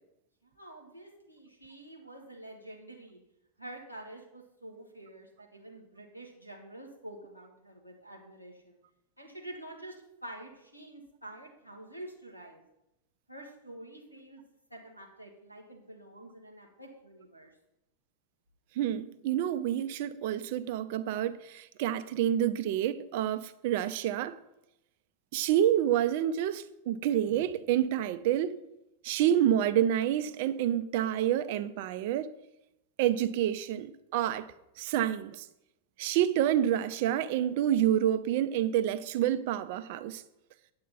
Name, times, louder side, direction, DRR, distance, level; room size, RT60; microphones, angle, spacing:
voice 1, 0.4-3.2 3.6-8.8 9.2-12.6 13.3-14.4 14.7-17.5, right 1 dB, 90° left, 1.9 m, -48 dB
voice 2, 18.8-24.4 25.3-28.6 29.0-32.3 33.0-34.5 34.8-35.5 36.0-40.2, right 11 dB, 50° right, 0.5 m, -28 dB
9.2 x 8.6 x 4.2 m
figure-of-eight pair, 90°, 0 cm